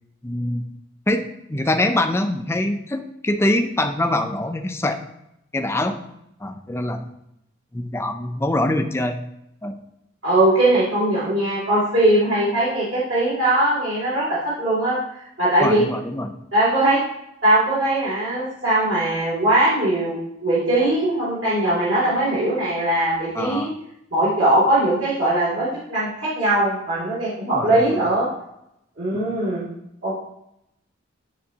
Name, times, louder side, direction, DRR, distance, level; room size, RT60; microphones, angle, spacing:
voice 1, 0.2-0.6 1.1-5.0 5.5-6.0 6.4-7.0 7.7-9.2 9.6-9.8 15.6-16.3 23.3-23.7 27.5-28.0 29.1-29.3, left 1 dB, 15° left, 6 dB, 0.4 m, -24 dB
voice 2, 10.2-15.0 15.4-15.8 16.5-17.0 17.4-23.7 24.1-28.3 29.0-29.7 30.0-30.2, right 1 dB, 70° right, -10 dB, 2.5 m, -20 dB
9.4 x 3.7 x 2.8 m, 0.80 s
head